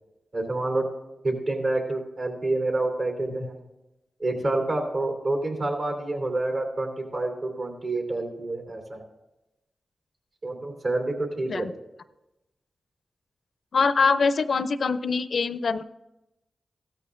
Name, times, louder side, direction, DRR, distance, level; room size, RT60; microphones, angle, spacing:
voice 1, 0.3-0.8 1.2-3.6 4.2-9.0 10.4-11.7, right 2 dB, 70° right, 1 dB, 2.9 m, -28 dB
voice 2, 13.7-15.8, left 4 dB, 70° left, 14 dB, 0.4 m, -23 dB
15.5 x 13.5 x 2.5 m, 0.97 s
cardioid pair, 50°, 0 cm